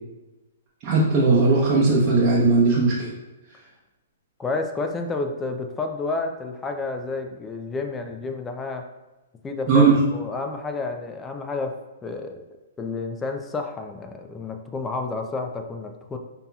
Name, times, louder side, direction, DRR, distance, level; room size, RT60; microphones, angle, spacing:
voice 1, 0.8-3.1 9.7-10.0, right 3 dB, 30° right, -8 dB, 0.9 m, -18 dB
voice 2, 4.4-8.9 9.4-11.8 12.0-12.4 12.8-16.2, left 3 dB, 15° left, 5 dB, 0.4 m, -30 dB
5.3 x 2.8 x 2.3 m, 1.1 s
hypercardioid pair, 145°, 0 cm